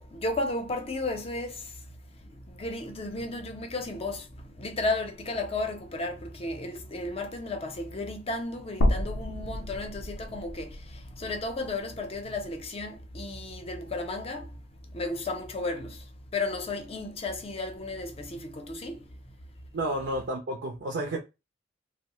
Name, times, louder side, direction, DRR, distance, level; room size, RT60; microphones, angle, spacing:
voice 1, 0.0-1.6 2.5-4.2 4.6-10.8 11.2-14.5 14.9-16.0 16.3-19.0, left 2 dB, 30° left, 0.5 m, -33 dB
sound 1, 8.8-13.0 13.3-13.4 14.8-14.9, left 1 dB, 90° left, 0.5 m, -31 dB
voice 2, 19.7-21.2, right 1 dB, 60° right, 0.5 m, -31 dB
2.6 x 2.0 x 2.9 m
head